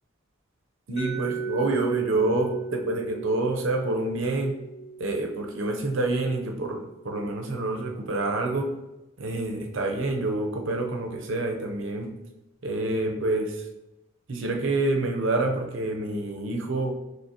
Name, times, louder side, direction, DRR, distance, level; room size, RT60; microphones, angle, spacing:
voice 1, 0.9-4.5 5.0-8.7 9.2-12.1 12.6-13.6 14.3-16.9, right 2 dB, 65° right, 2 dB, 0.6 m, -27 dB
Mallet percussion, 1.0-6.8, right 5 dB, ahead, 1.1 m, -37 dB
5.8 x 3.1 x 2.8 m, 0.95 s
head